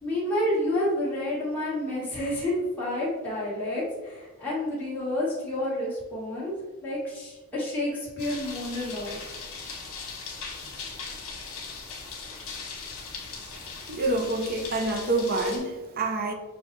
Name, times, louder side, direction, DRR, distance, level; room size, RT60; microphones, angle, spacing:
voice 1, 0.0-6.5 6.8-9.2, left 1 dB, 10° left, 1.5 m, -29 dB
sound 1, 8.2-15.6, left 4 dB, 70° left, 1.2 m, -39 dB
voice 2, 13.9-16.3, right 2 dB, 45° right, 0.6 m, -27 dB
6.2 x 2.3 x 3.1 m
head